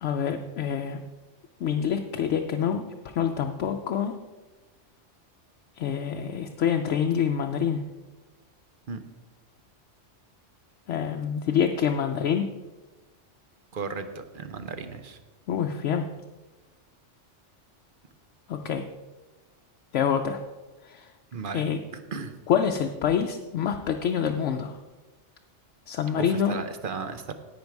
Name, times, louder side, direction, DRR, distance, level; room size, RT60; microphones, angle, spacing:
voice 1, 0.0-1.0 1.6-2.8 3.1-4.1 5.8-7.8 10.9-12.5 15.5-16.0 18.5-18.9 19.9-20.4 20.8-21.1 21.5-21.8 22.5-24.8 25.9-26.6, left 8 dB, 75° left, 4 dB, 0.9 m, -26 dB
voice 2, 13.7-15.2 21.3-21.7 21.9-22.3 26.2-27.3, right 5 dB, 50° right, 9 dB, 0.9 m, -35 dB
10.5 x 8.6 x 4.7 m, 1.2 s
omnidirectional pair, 1.3 m